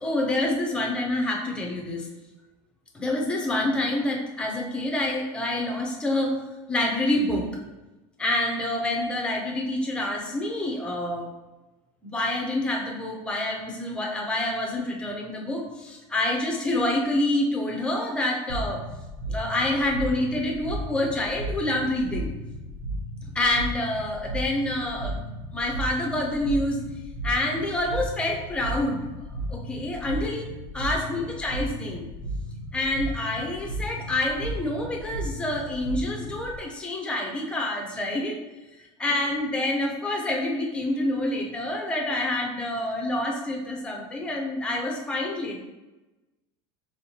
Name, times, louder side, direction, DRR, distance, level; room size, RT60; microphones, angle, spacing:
voice 1, 0.0-2.1 2.9-6.4 6.7-7.5 8.2-11.3 12.0-18.8 19.3-22.3 23.3-25.2 25.5-26.8 27.2-29.0 29.5-32.1 32.7-38.4 39.0-45.6, left 1 dB, 5° left, -1 dB, 0.5 m, -27 dB
sound 1, 18.5-36.6, right 1 dB, 80° right, 0.8 m, -35 dB
4.3 x 3.5 x 2.8 m, 1.1 s
supercardioid pair, 170°, 14 cm